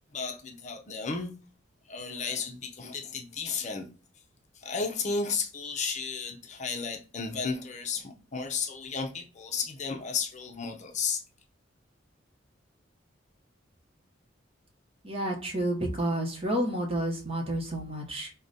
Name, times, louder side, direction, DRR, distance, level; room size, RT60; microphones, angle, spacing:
voice 1, 0.1-1.3 1.9-3.9 4.5-11.2, left 5 dB, 35° left, 0.6 m, -33 dB
voice 2, 15.0-18.3, right 1 dB, 30° right, 1.0 m, -30 dB
4.8 x 2.2 x 4.0 m
head